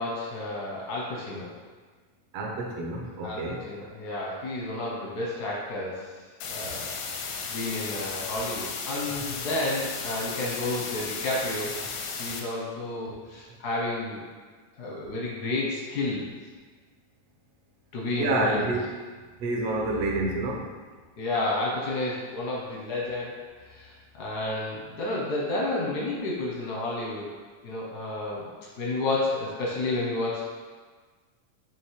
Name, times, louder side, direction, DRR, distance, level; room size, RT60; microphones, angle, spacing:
voice 1, 0.0-1.5 3.2-6.1 6.4-6.9 7.5-11.7 12.2-14.2 14.8-16.3 17.9-18.7 21.2-27.3 27.6-28.5 28.8-30.4, left 2 dB, 70° left, -5 dB, 0.9 m, -31 dB
voice 2, 2.3-3.6 18.2-18.8 19.4-20.7, right 2 dB, 70° right, -1 dB, 1.8 m, -28 dB
sound 1, 6.4-12.4, left 5 dB, 85° left, 2.0 m, -35 dB
6.3 x 3.2 x 4.7 m, 1.5 s
omnidirectional pair, 3.3 m